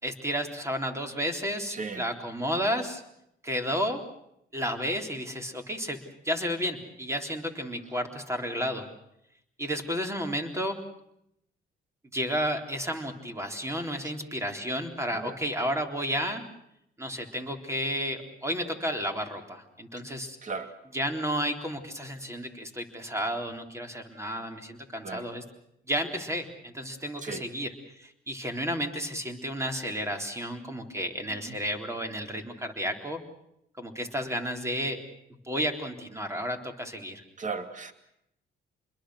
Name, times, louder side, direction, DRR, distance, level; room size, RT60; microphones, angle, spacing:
voice 1, 0.0-3.0 3.4-4.0 4.5-8.9 9.6-10.8 12.1-16.4 17.0-20.4 20.9-25.4 25.9-33.2 33.8-35.0 35.4-37.2, equal, 15° right, 5 dB, 3.8 m, -32 dB
voice 2, 1.7-2.0 15.2-15.3 20.4-20.7 25.0-25.2 27.2-27.4 37.4-37.9, right 4 dB, 40° right, 9 dB, 2.5 m, -35 dB
28.0 x 22.0 x 6.5 m, 0.78 s
cardioid pair, 90°, 20 cm